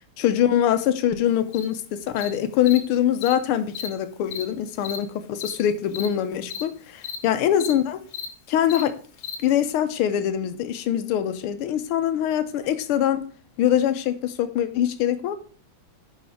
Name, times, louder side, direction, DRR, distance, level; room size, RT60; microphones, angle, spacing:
voice 1, 0.2-8.0 8.5-8.9 9.4-13.2 13.6-15.3, left 10 dB, 85° left, 1.6 m, -23 dB
Cricket, 1.5-1.7 2.2-2.3 2.7-2.8 3.2-3.3 3.7-3.9 4.3-4.4 4.8-5.0 5.4-5.5 5.9-6.1 6.5-6.6 7.0-7.2 7.6-7.7 8.1-8.3 8.7-8.8 9.2-9.4, left 8 dB, 70° left, 2.1 m, -33 dB
6.4 x 5.6 x 5.0 m
omnidirectional pair, 2.4 m